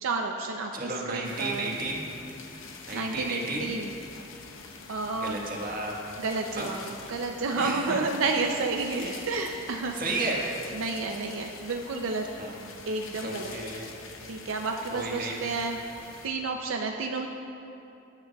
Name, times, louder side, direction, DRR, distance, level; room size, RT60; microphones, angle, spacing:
voice 1, 0.0-1.7 2.9-3.9 4.9-5.4 6.2-10.1 10.7-12.3 12.9-13.5 14.3-15.8 16.2-17.3, right 3 dB, 80° right, 2 dB, 0.5 m, -31 dB
voice 2, 0.7-2.1 2.9-3.7 5.2-6.0 6.6-6.7 7.6-8.0 8.9-9.2 9.9-10.5 12.4-12.6 13.2-13.9 14.9-15.4, right 2 dB, 45° right, -2 dB, 1.4 m, -33 dB
sound 1, 1.2-16.3, left 4 dB, 75° left, 0.8 m, -46 dB
18.0 x 8.9 x 2.3 m, 2.7 s
head